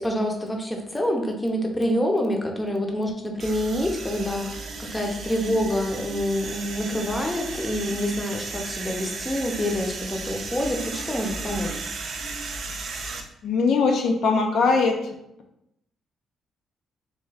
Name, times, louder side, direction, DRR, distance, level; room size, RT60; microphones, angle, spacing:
voice 1, 0.0-11.7, equal, 15° left, 2 dB, 0.6 m, -27 dB
sound 1, 3.4-13.2, right 3 dB, 60° right, 0.5 m, -35 dB
voice 2, 13.4-15.1, left 4 dB, 75° left, 3 dB, 0.5 m, -21 dB
3.4 x 2.6 x 3.3 m, 0.81 s
cardioid pair, 90°, 0 cm